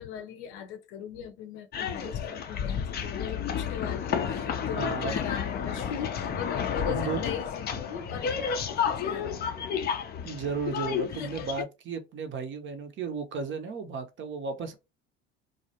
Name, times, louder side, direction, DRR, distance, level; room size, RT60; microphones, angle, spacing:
voice 1, 0.0-9.7 11.2-11.5, left 8 dB, 70° left, 0.7 m, -39 dB
sound 1, 1.7-11.6, left 7 dB, 30° left, 0.4 m, -31 dB
voice 2, 4.7-5.1 6.8-7.2 10.2-14.7, right 5 dB, 35° right, 0.6 m, -34 dB
2.4 x 2.1 x 2.7 m
hypercardioid pair, 75°, 34 cm